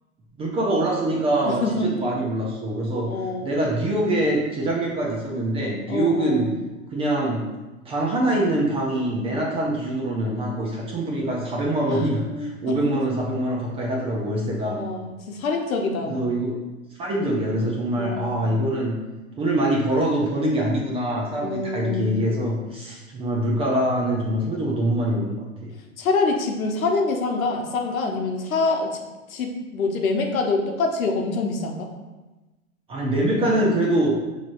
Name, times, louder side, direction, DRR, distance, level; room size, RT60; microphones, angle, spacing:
voice 1, 0.4-3.1 3.4-6.5 6.9-7.5 7.9-14.8 16.0-16.6 17.0-19.0 19.4-25.7 32.9-34.2, right 1 dB, 15° right, -3 dB, 0.4 m, -24 dB
voice 2, 1.4-1.9 3.0-3.6 5.9-6.5 11.9-12.8 14.6-16.2 17.9-18.4 21.3-22.2 26.0-29.0 29.3-31.9, left 3 dB, 75° left, 2 dB, 0.9 m, -26 dB
5.9 x 3.2 x 2.5 m, 1.1 s
hypercardioid pair, 110°, 42 cm